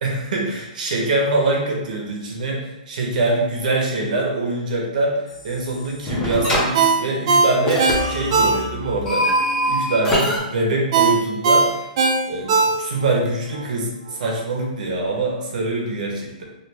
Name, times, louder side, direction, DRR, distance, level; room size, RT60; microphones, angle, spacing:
voice 1, 0.0-9.3 9.6-11.9 12.3-16.4, right 2 dB, 70° right, -1 dB, 1.0 m, -24 dB
sound 1, 5.3-5.7 6.1-6.6 7.7-10.4, equal, 15° left, 0.8 m, -23 dB
Ringtone, 6.7-9.0 9.4-9.5 10.9-13.2 13.5-13.7, right 4 dB, 45° right, 0.5 m, -18 dB
3.2 x 2.1 x 3.4 m, 0.99 s
hypercardioid pair, 150°, 5 cm